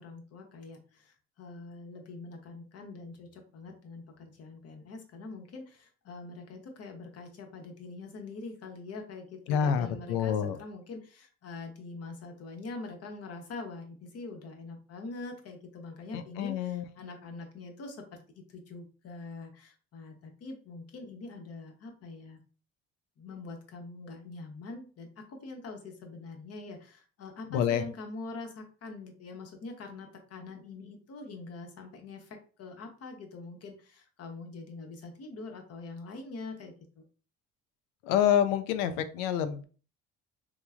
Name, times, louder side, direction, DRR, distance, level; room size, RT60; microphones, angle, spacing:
voice 1, 0.0-22.4 23.2-37.0, left 3 dB, 50° left, 3 dB, 0.9 m, -44 dB
voice 2, 9.5-10.6 16.1-16.8 27.5-27.8 38.0-39.6, left 9 dB, 80° left, 10 dB, 0.5 m, -27 dB
3.0 x 2.3 x 2.4 m, 0.39 s
supercardioid pair, 75°, 32 cm